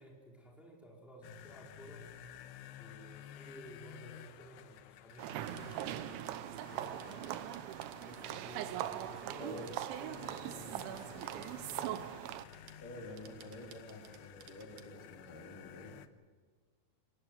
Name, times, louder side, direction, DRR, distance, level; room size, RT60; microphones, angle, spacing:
voice 1, 0.0-2.1 2.8-7.5 8.0-12.2, equal, ahead, -1 dB, 3.9 m, -54 dB
sound 1, 1.2-16.1, left 10 dB, 75° left, 2.9 m, -53 dB
sound 2, 5.1-9.1 9.5-12.1 12.3-12.8 13.1-14.9, right 9 dB, 65° right, 2.3 m, -60 dB
sound 3, 5.2-12.4, right 13 dB, 85° right, 3.3 m, -41 dB
voice 2, 12.8-15.9, left 1 dB, 50° left, 0 dB, 4.1 m, -49 dB
26.0 x 19.0 x 8.0 m, 1.5 s
omnidirectional pair, 5.2 m